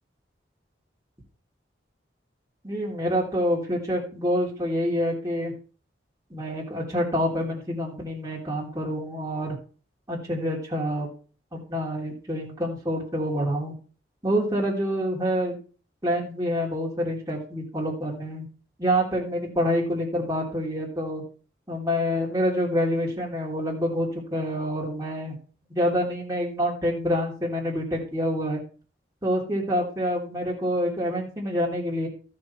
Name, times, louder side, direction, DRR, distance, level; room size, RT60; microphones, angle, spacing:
voice 1, 2.6-5.5 6.3-9.6 10.1-11.1 11.5-13.7 14.2-15.6 16.0-18.5 18.8-21.2 21.7-25.4 25.7-28.6 29.2-32.1, equal, 20° right, -4 dB, 3.2 m, -27 dB
13.0 x 6.7 x 4.5 m, 0.38 s
head